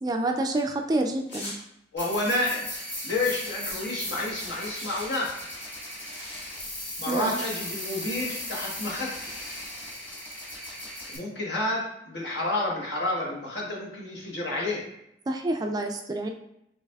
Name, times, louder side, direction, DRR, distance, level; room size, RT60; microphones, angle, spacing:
voice 1, 0.0-1.5 7.1-7.3 15.3-16.3, right 2 dB, 20° right, 4 dB, 0.3 m, -28 dB
sound 1, 1.3-1.6 2.2-4.0 4.3-4.4 4.6-6.7 7.4-7.6 8.2-8.9, left 1 dB, 90° left, 1.5 m, -44 dB
voice 2, 1.9-2.6 3.0-5.3 7.0-9.1 11.1-14.8, left 2 dB, 65° left, -3 dB, 1.3 m, -29 dB
sound 2, 2.0-11.2, left 1 dB, 10° left, 1.1 m, -37 dB
5.6 x 3.3 x 2.3 m, 0.80 s
head